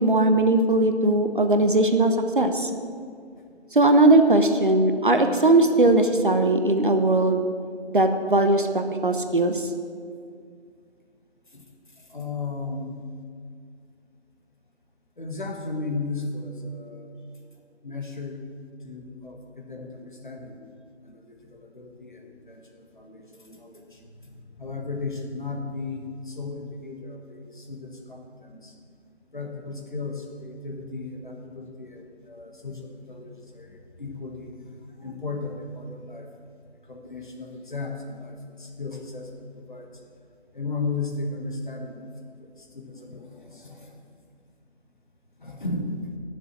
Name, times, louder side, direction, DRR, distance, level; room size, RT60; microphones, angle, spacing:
voice 1, 0.0-2.7 3.7-7.5 7.9-9.7, right 2 dB, 50° right, 6 dB, 0.8 m, -19 dB
voice 2, 12.1-12.9 15.2-17.1 17.8-18.4 18.8-20.7 21.0-24.0 24.5-28.7 29.3-34.5 35.0-36.3 36.9-39.3 39.6-39.9 40.5-42.1 42.6-44.0 45.4-46.1, left 3 dB, 45° left, 1 dB, 1.5 m, -35 dB
10.5 x 6.8 x 7.6 m, 2.2 s
figure-of-eight pair, 165°, 34 cm